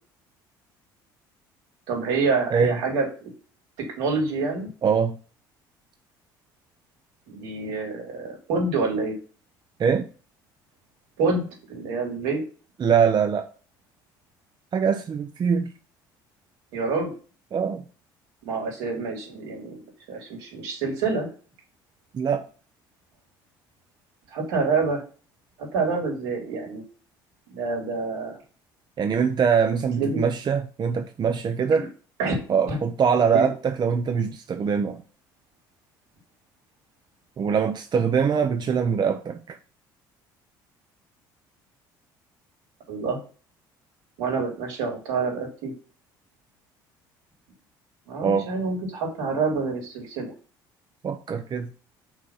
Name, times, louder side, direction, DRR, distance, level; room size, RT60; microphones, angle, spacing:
voice 1, 1.9-3.3 3.8-4.7 7.3-9.2 11.2-12.4 16.7-17.1 18.4-19.8 20.1-21.3 24.3-25.0 25.6-26.8 27.5-28.4 30.0-30.2 31.7-31.9 32.2-32.3 32.7-32.8 33.3-33.5 42.9-43.2 44.2-45.7 48.1-50.3, right 4 dB, 80° right, 3.4 m, -27 dB
voice 2, 4.8-5.2 9.8-10.1 12.8-13.5 14.7-15.7 17.5-17.8 22.1-22.5 29.0-31.9 32.5-35.0 37.4-39.6 48.2-48.5 51.0-51.7, right 6 dB, 40° right, 0.8 m, -23 dB
6.0 x 4.1 x 5.7 m
hypercardioid pair, 65°, 11 cm